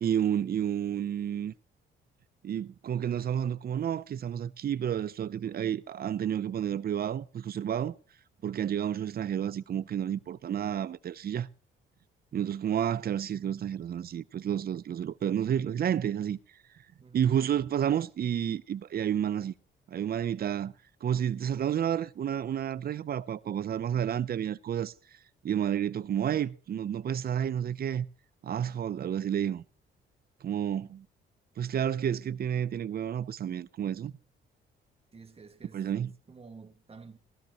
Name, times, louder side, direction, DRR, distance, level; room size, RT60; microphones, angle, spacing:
voice 1, 0.0-1.5 2.4-8.0 8.4-11.5 12.3-16.4 17.1-19.5 19.9-20.7 21.0-24.9 25.4-28.1 28.4-29.6 30.4-31.0 31.6-34.1 35.7-36.1, right 9 dB, 50° right, 0.6 m, -30 dB
voice 2, 35.1-37.2, right 4 dB, 30° right, 1.9 m, -51 dB
16.5 x 13.0 x 3.0 m
cardioid pair, 90°, 20 cm